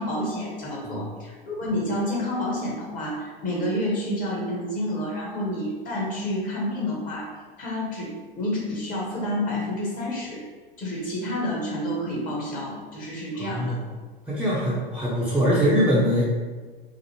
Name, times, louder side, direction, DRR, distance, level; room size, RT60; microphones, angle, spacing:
voice 1, 0.0-7.3 7.6-10.4 10.8-13.8, left 1 dB, 25° left, -3 dB, 1.1 m, -29 dB
voice 2, 13.3-13.8 14.3-16.2, equal, 5° right, -9 dB, 0.6 m, -23 dB
5.0 x 2.0 x 3.0 m, 1.4 s
figure-of-eight pair, 95°, 30 cm